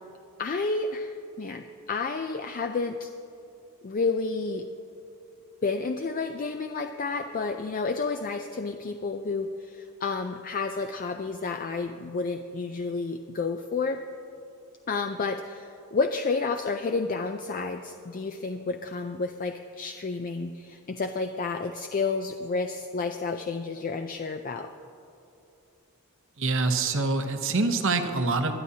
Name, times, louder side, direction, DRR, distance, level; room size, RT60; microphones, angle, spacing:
voice 1, 0.4-3.1 3.8-4.7 5.6-14.0 14.9-24.7, left 4 dB, 40° left, 6 dB, 0.4 m, -30 dB
voice 2, 26.4-28.5, right 3 dB, 60° right, 6 dB, 0.9 m, -25 dB
20.5 x 11.5 x 2.8 m, 2.7 s
head